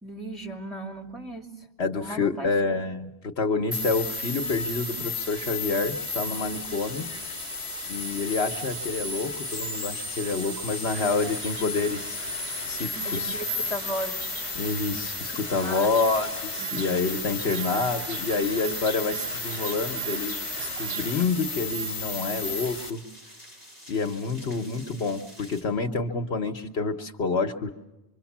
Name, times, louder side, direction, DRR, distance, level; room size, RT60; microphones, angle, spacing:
voice 1, 0.0-1.7 1.9-2.8 13.0-14.4 15.5-15.9 16.6-16.9, right 1 dB, ahead, 0 dB, 2.6 m, -36 dB
voice 2, 1.8-7.0 7.9-12.2 12.6-13.3 14.6-23.0 23.9-27.7, left 4 dB, 65° left, 6 dB, 1.2 m, -28 dB
sound 1, 3.7-22.9, left 2 dB, 25° left, 1.6 m, -33 dB
sound 2, 6.7-25.6, equal, 35° right, 6.3 m, -48 dB
sound 3, 10.9-21.3, right 2 dB, 60° right, 2.0 m, -42 dB
25.5 x 24.0 x 7.2 m, 1.0 s
omnidirectional pair, 1.2 m